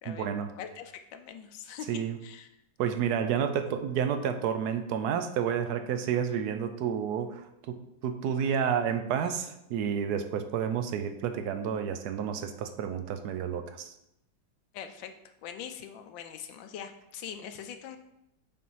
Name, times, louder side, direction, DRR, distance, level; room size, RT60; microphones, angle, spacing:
voice 1, 0.1-0.5 1.9-2.2 2.8-13.9, right 8 dB, 70° right, 8 dB, 1.0 m, -30 dB
voice 2, 0.6-2.5 14.7-15.1 15.4-18.0, left 8 dB, 85° left, 7 dB, 1.4 m, -42 dB
6.9 x 4.3 x 4.6 m, 0.83 s
omnidirectional pair, 2.0 m